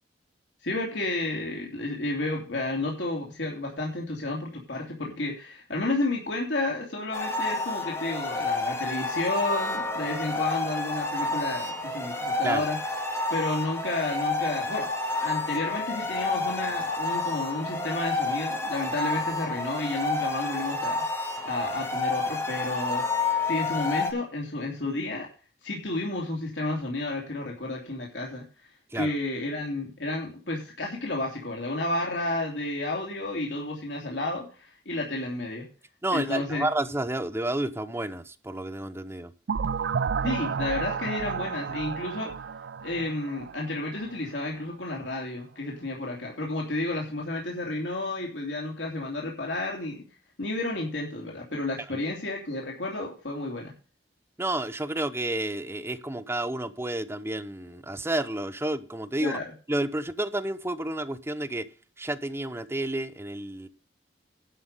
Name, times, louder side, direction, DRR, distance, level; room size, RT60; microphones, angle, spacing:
voice 1, 0.6-12.8 13.3-21.0 21.4-23.0 23.4-25.3 25.6-28.4 28.9-35.7 36.1-36.7 40.2-42.3 42.8-50.0 50.4-53.7 59.2-59.4, left 2 dB, 80° left, 3.0 m, -31 dB
sound 1, 7.1-24.1, left 3 dB, 15° left, 2.2 m, -29 dB
voice 2, 36.0-39.3 51.9-52.0 54.4-59.4 59.7-61.7 62.0-63.7, right 1 dB, 15° right, 0.9 m, -30 dB
sound 2, 39.5-44.2, right 6 dB, 70° right, 0.4 m, -31 dB
11.5 x 5.7 x 6.7 m
head